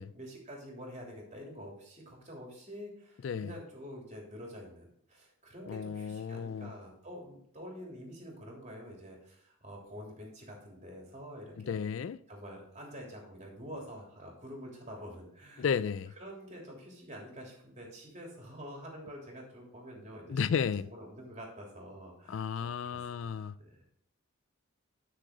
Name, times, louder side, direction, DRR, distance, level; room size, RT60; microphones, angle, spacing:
voice 1, 0.0-11.8 12.3-15.7 16.2-23.8, equal, 35° right, 3.2 m, -47 dB
voice 2, 5.7-6.7 11.6-12.2 15.6-16.1 20.3-20.9 22.3-23.5, left 6 dB, 60° left, 0.3 m, -33 dB
11.5 x 6.4 x 3.9 m
head